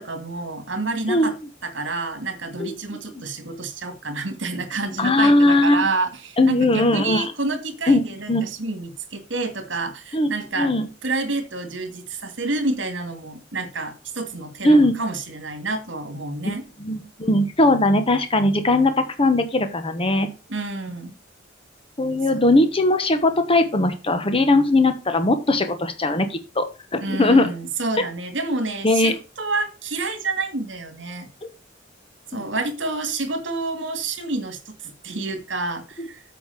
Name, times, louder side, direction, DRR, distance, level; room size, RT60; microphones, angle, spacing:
voice 1, 0.0-1.4 1.6-10.7 11.0-16.6 20.5-21.1 22.3-22.5 27.0-31.3 32.3-36.2, right 3 dB, 65° right, 7 dB, 2.3 m, -28 dB
voice 2, 5.0-5.8 6.4-7.2 7.9-8.0 8.3-8.5 10.1-10.3 10.6-10.9 14.6-15.0 16.4-16.5 16.8-20.3 22.0-26.7 26.9-27.5 28.8-29.1 31.4-31.5 36.0-36.1, left 2 dB, 30° left, 8 dB, 1.1 m, -19 dB
8.3 x 5.1 x 6.7 m, 0.30 s
head